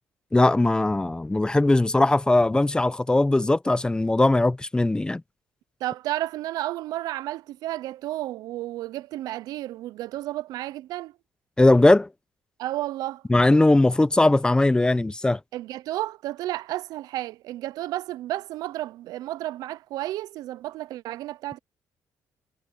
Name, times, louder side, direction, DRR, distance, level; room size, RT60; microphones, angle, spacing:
voice 1, 0.3-5.2 11.6-12.1 13.3-15.4, left 2 dB, 15° left, 0.8 m, -19 dB
voice 2, 5.8-11.1 12.6-13.2 15.5-21.6, right 15 dB, 80° right, 0.5 m, -32 dB
cardioid pair, 85°, 6 cm